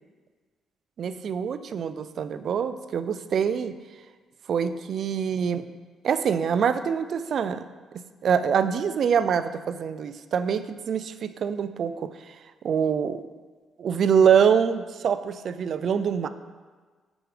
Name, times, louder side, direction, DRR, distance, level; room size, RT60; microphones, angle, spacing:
voice 1, 1.0-3.8 4.5-5.7 6.0-7.6 8.2-12.1 12.6-13.2 13.8-16.3, right 7 dB, 60° right, 12 dB, 0.3 m, -24 dB
6.1 x 4.9 x 5.0 m, 1.5 s
cardioid pair, 90°, 0 cm